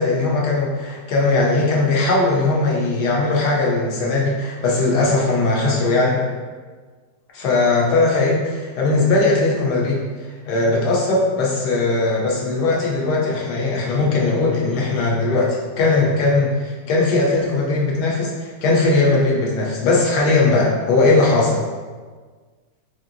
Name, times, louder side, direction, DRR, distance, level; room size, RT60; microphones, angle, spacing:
voice 1, 0.0-6.2 7.3-10.0 10.4-21.6, left 3 dB, 85° left, -3 dB, 1.4 m, -19 dB
4.4 x 2.7 x 2.5 m, 1.5 s
omnidirectional pair, 1.7 m